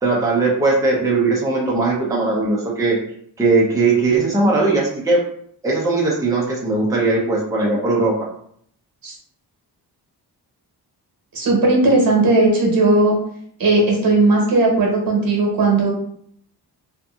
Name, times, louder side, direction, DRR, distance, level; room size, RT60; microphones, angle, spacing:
voice 1, 0.0-3.0 3.4-5.2 5.6-8.2, right 3 dB, 10° right, -3 dB, 0.6 m, -19 dB
voice 2, 11.3-13.2 13.6-15.9, right 2 dB, 55° right, -1 dB, 1.1 m, -16 dB
2.6 x 2.6 x 2.4 m, 0.65 s
cardioid pair, 80°, 41 cm